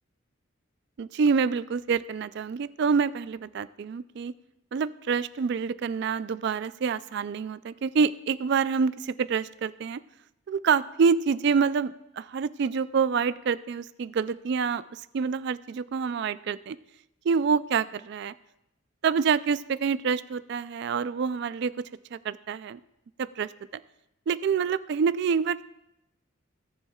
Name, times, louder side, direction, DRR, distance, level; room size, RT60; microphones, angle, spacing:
voice 1, 1.0-4.3 4.7-10.0 10.5-14.8 15.1-16.8 17.2-18.3 19.0-21.7 22.1-22.8 23.2-23.8 24.3-25.6, right 5 dB, 55° right, 15 dB, 0.3 m, -27 dB
17.5 x 7.1 x 2.3 m, 0.88 s
head